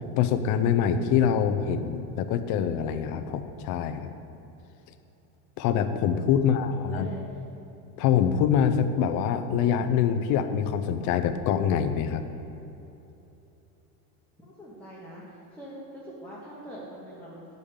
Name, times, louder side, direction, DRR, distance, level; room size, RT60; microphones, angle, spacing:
voice 1, 0.2-4.2 5.6-7.1 8.0-12.2, left 8 dB, 40° left, 8 dB, 0.5 m, -25 dB
voice 2, 6.4-7.2 14.4-17.4, equal, 5° left, -8 dB, 1.1 m, -43 dB
8.3 x 5.2 x 7.1 m, 3.0 s
supercardioid pair, 135°, 46 cm